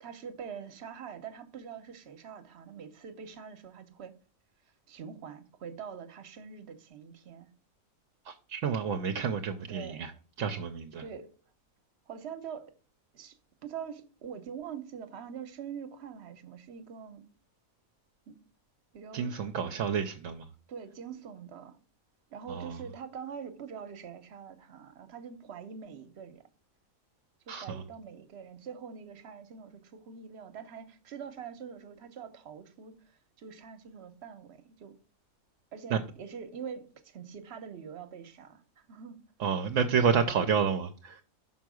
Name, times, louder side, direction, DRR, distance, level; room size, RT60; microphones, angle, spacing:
voice 1, 0.0-4.1 4.9-7.5 9.7-10.2 11.0-11.3 12.1-12.7 13.1-13.4 13.6-17.2 18.3-18.4 18.9-19.3 20.7-21.8 22.3-26.4 27.5-34.9 35.7-39.2, right 7 dB, 55° right, 1.1 m, -44 dB
voice 2, 8.2-10.1 10.4-11.0 19.1-20.5 22.5-22.8 27.5-27.8 35.9-36.0 39.4-41.2, right 6 dB, 70° right, 1.0 m, -29 dB
5.9 x 4.6 x 6.1 m
omnidirectional pair, 1.4 m